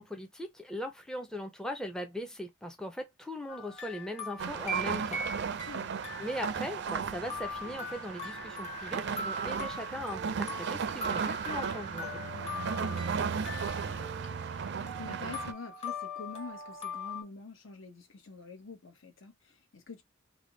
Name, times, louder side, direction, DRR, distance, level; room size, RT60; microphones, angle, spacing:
voice 1, 0.0-5.2 6.2-12.2, left 1 dB, 5° left, 0.4 m, -39 dB
sound 1, 3.5-5.8 6.0-17.2, left 1 dB, 30° left, 1.1 m, -41 dB
sound 2, 4.4-15.5, right 6 dB, 55° right, 0.4 m, -35 dB
voice 2, 12.8-20.0, left 4 dB, 70° left, 0.9 m, -47 dB
3.3 x 2.1 x 3.8 m
head